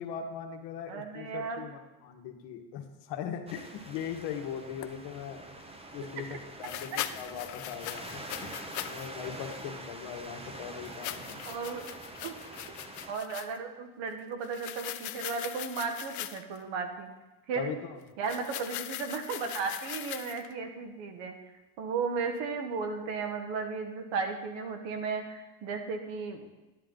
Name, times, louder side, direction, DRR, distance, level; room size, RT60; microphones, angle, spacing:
voice 1, 0.0-5.5 5.9-8.5 8.8-11.4 17.5-18.0, left 8 dB, 60° left, 4 dB, 1.6 m, -40 dB
voice 2, 0.9-1.6 11.5-11.9 12.2-12.3 13.1-17.1 17.5-17.7 18.2-21.3 21.8-26.5, right 5 dB, 65° right, 5 dB, 1.8 m, -35 dB
sound 1, 3.5-13.1, right 2 dB, 10° right, 0.9 m, -45 dB
sound 2, 4.8-4.9 6.6-9.1 9.4-9.6 10.8-13.6 14.4-16.6 18.2-20.5, left 13 dB, 40° left, 0.5 m, -40 dB
11.0 x 10.0 x 3.9 m, 1.1 s
supercardioid pair, 120°, 48 cm